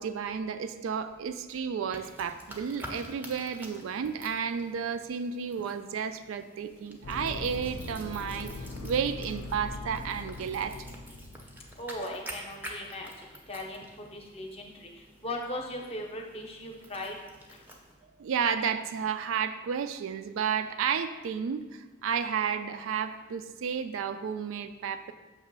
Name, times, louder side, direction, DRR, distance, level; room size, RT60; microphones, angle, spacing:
voice 1, 0.0-10.9 18.2-25.1, right 7 dB, 75° right, 10 dB, 0.3 m, -32 dB
sound 1, 1.9-17.9, right 1 dB, 10° right, 0.5 m, -48 dB
sound 2, 7.0-11.9, left 2 dB, 65° left, 0.4 m, -41 dB
voice 2, 11.8-14.9 15.2-17.2 17.5-17.6, left 1 dB, 30° left, 2 dB, 0.7 m, -38 dB
6.2 x 2.9 x 5.3 m, 1.2 s
head